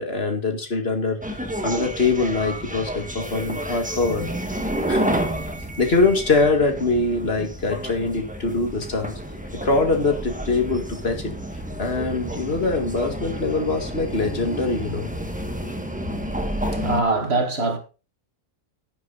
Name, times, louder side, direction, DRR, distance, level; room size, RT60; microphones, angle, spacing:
voice 1, 0.0-4.3 4.9-5.2 5.8-9.1 9.6-11.3 11.8-15.1 15.6-15.7, left 3 dB, 50° left, 2.2 m, -23 dB
sound 1, 1.2-17.0, equal, 5° right, 1.4 m, -30 dB
voice 2, 16.6-17.8, right 3 dB, 50° right, 2.3 m, -23 dB
10.5 x 10.0 x 4.0 m
omnidirectional pair, 1.3 m